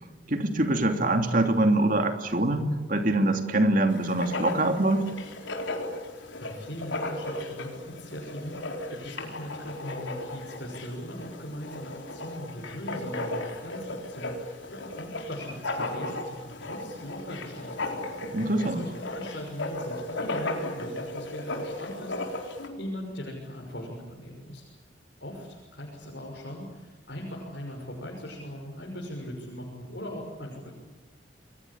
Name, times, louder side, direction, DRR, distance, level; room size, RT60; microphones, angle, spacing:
voice 1, 0.3-5.1 18.3-18.8, right 1 dB, 45° right, 6 dB, 2.9 m, -24 dB
Writing, 3.9-22.7, left 2 dB, 85° left, 4.5 m, -36 dB
voice 2, 6.4-24.6 25.2-30.7, equal, 65° left, -3 dB, 6.5 m, -40 dB
29.5 x 22.5 x 8.7 m, 1.3 s
head